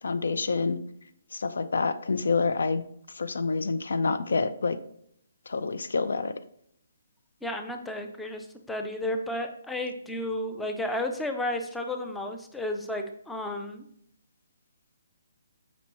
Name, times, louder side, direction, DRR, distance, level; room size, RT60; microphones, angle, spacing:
voice 1, 0.0-0.8 1.3-2.8 3.1-4.8 5.5-6.3, left 4 dB, 80° left, 11 dB, 0.5 m, -27 dB
voice 2, 7.4-13.8, left 1 dB, ahead, 4 dB, 0.3 m, -32 dB
7.1 x 5.2 x 2.9 m, 0.68 s
hypercardioid pair, 180°, 0 cm